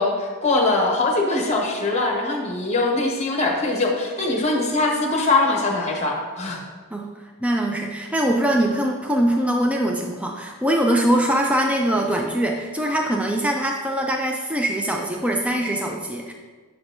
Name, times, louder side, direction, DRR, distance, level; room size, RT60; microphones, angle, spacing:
voice 1, 0.0-6.6, left 2 dB, 30° left, 0 dB, 1.0 m, -22 dB
voice 2, 7.4-16.3, right 1 dB, 5° right, 1 dB, 0.3 m, -22 dB
7.2 x 6.8 x 2.6 m, 1.4 s
head